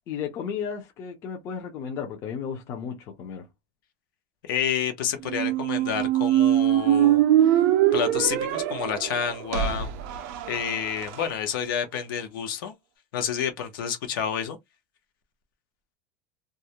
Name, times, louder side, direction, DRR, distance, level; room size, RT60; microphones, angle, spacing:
voice 1, 0.1-3.5, left 7 dB, 25° left, 0.4 m, -34 dB
voice 2, 4.4-7.6 7.9-9.9 10.5-12.7 13.1-14.6, left 8 dB, 75° left, 0.7 m, -29 dB
Squeak, 5.2-11.2, right 12 dB, 45° right, 0.4 m, -23 dB
2.3 x 2.0 x 2.8 m
supercardioid pair, 180°, 11 cm